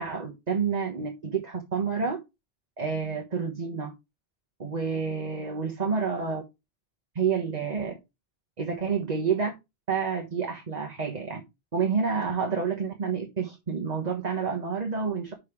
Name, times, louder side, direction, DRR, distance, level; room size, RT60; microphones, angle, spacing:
voice 1, 0.0-2.2 2.8-3.9 4.6-6.4 7.1-7.9 8.6-9.5 9.9-11.4 11.7-15.3, right 5 dB, 40° right, 3 dB, 1.4 m, -29 dB
6.5 x 5.2 x 5.0 m, 0.23 s
omnidirectional pair, 1.0 m